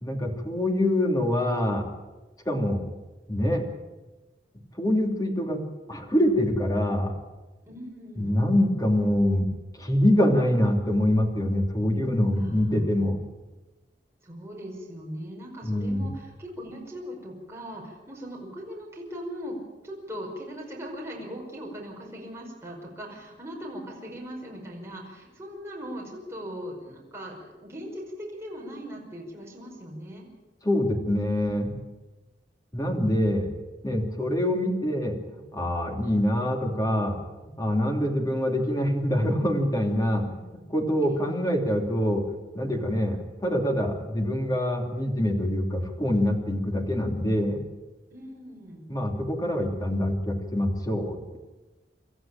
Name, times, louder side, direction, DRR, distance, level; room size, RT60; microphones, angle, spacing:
voice 1, 0.0-1.8 2.4-2.8 3.3-3.6 4.8-5.6 5.9-7.1 8.2-9.5 9.7-13.2 15.6-16.1 30.6-31.8 32.7-33.5 33.8-37.2 37.4-42.2 42.5-47.6 48.9-51.4, left 1 dB, 20° left, 2 dB, 3.1 m, -25 dB
voice 2, 7.7-8.3 12.4-13.1 14.2-19.6 19.8-30.3 41.1-41.4 48.1-48.8, equal, 15° right, -2 dB, 5.3 m, -39 dB
26.5 x 14.0 x 8.9 m, 1.1 s
head